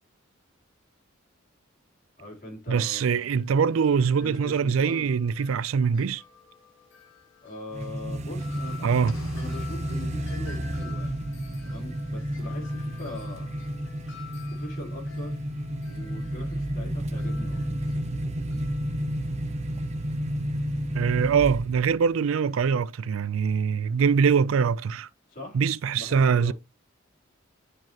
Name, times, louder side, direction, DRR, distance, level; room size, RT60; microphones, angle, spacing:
voice 1, 2.2-3.3 4.2-5.1 7.4-11.2 11.6-13.5 14.5-15.5 15.9-17.9 25.3-25.6 25.9-26.5, left 1 dB, 45° left, 3.4 m, -41 dB
voice 2, 2.7-6.2 8.8-9.1 20.9-25.1 25.5-26.5, right 6 dB, 75° right, 0.4 m, -23 dB
Wind chime, 3.3-21.2, left 7 dB, 65° left, 1.6 m, -51 dB
sound 1, 7.7-22.0, equal, 35° right, 0.7 m, -31 dB
sound 2, 9.1-11.0, left 4 dB, 80° left, 1.3 m, -51 dB
9.4 x 5.0 x 2.9 m
head